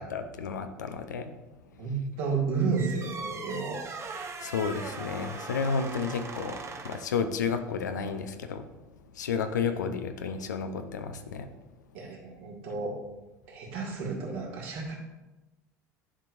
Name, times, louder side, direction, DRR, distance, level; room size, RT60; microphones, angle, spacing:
voice 1, 0.0-1.3 4.4-8.7 9.1-11.5, left 5 dB, 80° left, 8 dB, 0.5 m, -32 dB
voice 2, 1.8-3.8 11.9-13.0 13.5-14.9, right 4 dB, 60° right, -2 dB, 1.9 m, -31 dB
sound 1, 2.7-7.2, right 4 dB, 30° right, 0.8 m, -40 dB
11.0 x 4.5 x 2.5 m, 1.0 s
hypercardioid pair, 75°, 9 cm